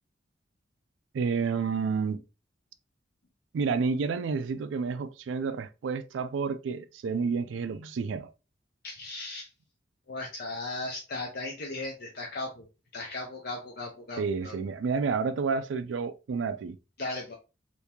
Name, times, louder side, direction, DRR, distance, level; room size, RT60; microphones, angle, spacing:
voice 1, 1.1-2.2 3.5-8.3 14.2-16.8, right 5 dB, 85° right, 0.4 m, -30 dB
voice 2, 8.8-9.5 10.1-12.6 12.9-14.6 17.0-17.3, left 2 dB, 55° left, 0.6 m, -37 dB
3.5 x 2.7 x 2.8 m
head